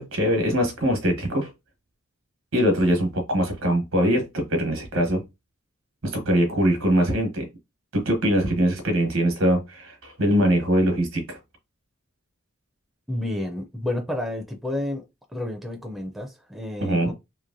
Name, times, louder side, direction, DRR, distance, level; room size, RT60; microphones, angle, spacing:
voice 1, 0.0-1.5 2.5-5.2 6.0-7.5 7.9-11.4 16.8-17.1, equal, 75° right, 1.1 m, -22 dB
voice 2, 13.1-15.0 15.3-17.1, left 1 dB, ahead, 0.4 m, -30 dB
2.9 x 2.5 x 2.6 m
head